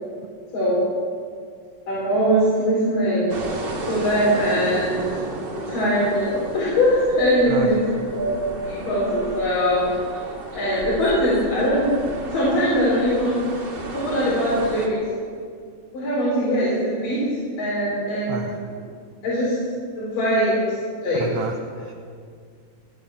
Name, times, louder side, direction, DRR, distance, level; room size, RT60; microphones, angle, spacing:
voice 1, 1.9-3.3 3.9-5.1 5.5-8.4 8.6-9.9 10.5-12.0 12.3-13.4 13.9-15.0 15.9-18.5 19.2-19.6 19.9-20.6 21.0-21.2, equal, 85° left, -8 dB, 5.9 m, -21 dB
sound 1, 3.3-14.9, right 2 dB, 35° right, 2.5 m, -34 dB
voice 2, 7.5-7.8 18.3-18.6 21.1-21.9, right 5 dB, 70° right, 3 dB, 1.7 m, -31 dB
19.0 x 11.0 x 7.1 m, 2.2 s
omnidirectional pair, 3.7 m